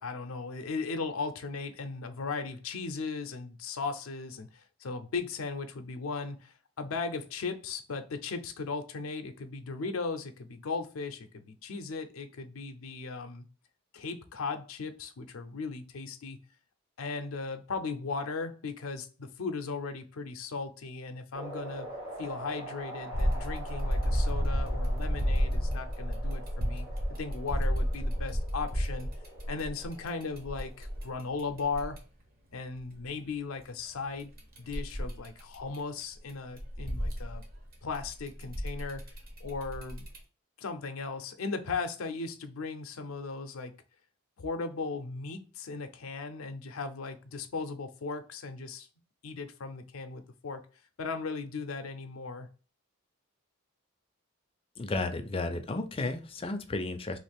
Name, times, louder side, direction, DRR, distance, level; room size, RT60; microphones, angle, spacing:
voice 1, 0.0-13.4 13.9-16.4 17.0-21.9 22.2-26.9 27.2-29.1 29.5-32.0 32.5-34.3 34.6-37.4 37.8-39.0 39.4-40.1 40.6-43.7 44.4-48.9 49.2-50.6 51.0-52.5, left 4 dB, 85° left, 7 dB, 0.5 m, -37 dB
sound 1, 21.3-31.2, right 1 dB, 80° right, 1.5 m, -45 dB
sound 2, 23.1-32.0 34.2-36.0 36.3-40.2, equal, 45° right, 0.9 m, -31 dB
voice 2, 54.8-57.2, left 2 dB, 25° left, 7 dB, 0.4 m, -33 dB
3.1 x 2.4 x 3.4 m, 0.35 s
head